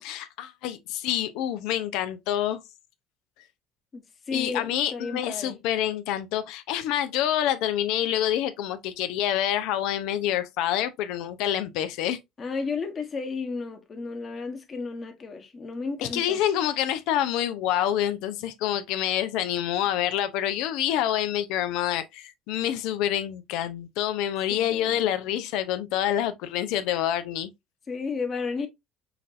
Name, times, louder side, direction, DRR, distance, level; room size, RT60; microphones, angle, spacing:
voice 1, 0.0-2.6 4.3-12.2 16.0-27.5, left 11 dB, 75° left, 0.5 m, -27 dB
voice 2, 3.9-5.6 12.4-16.4 24.5-25.1 27.9-28.7, left 4 dB, 35° left, 1.2 m, -33 dB
5.7 x 2.6 x 2.5 m
supercardioid pair, 80°, 0 cm